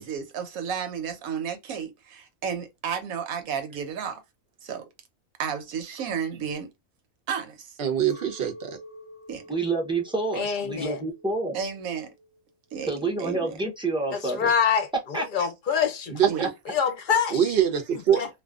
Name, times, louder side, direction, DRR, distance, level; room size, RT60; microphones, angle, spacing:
voice 1, 0.0-4.2 4.6-4.9 5.4-6.7 7.3-7.7 9.3-9.4 11.5-12.1 12.7-12.9 13.2-13.5 15.4-15.5 16.3-16.5, right 7 dB, 85° right, 1.2 m, -32 dB
voice 2, 7.8-8.8 16.1-16.5 17.3-18.2, right 9 dB, 60° right, 0.7 m, -24 dB
Chink clink, 8.1-13.6, equal, 10° left, 1.0 m, -49 dB
voice 3, 9.5-11.6 12.9-14.5 15.1-15.2 16.4-16.5, right 3 dB, 5° right, 0.4 m, -28 dB
voice 4, 10.3-11.0 14.1-16.2 16.7-17.4 18.1-18.3, left 7 dB, 50° left, 0.7 m, -25 dB
2.5 x 2.2 x 2.3 m
omnidirectional pair, 1.5 m